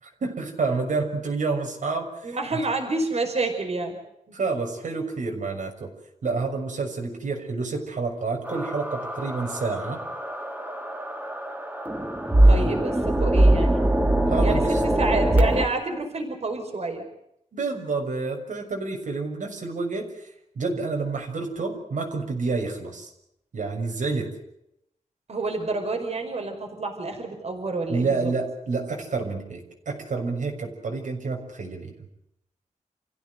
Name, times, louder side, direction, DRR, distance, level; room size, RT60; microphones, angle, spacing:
voice 1, 0.0-2.4 4.3-5.9 6.2-10.0 12.4-12.8 14.3-14.8 17.5-20.3 20.5-23.1 23.5-24.3 27.9-31.9, right 4 dB, 85° right, 1 dB, 6.5 m, -29 dB
voice 2, 2.2-4.0 4.3-4.4 12.5-13.8 14.4-17.0 25.3-28.3, right 3 dB, 55° right, 4 dB, 5.1 m, -28 dB
sound 1, 8.5-15.7, right 1 dB, 10° right, 3.2 m, -22 dB
29.5 x 16.0 x 8.2 m, 0.79 s
wide cardioid pair, 155°, 13 cm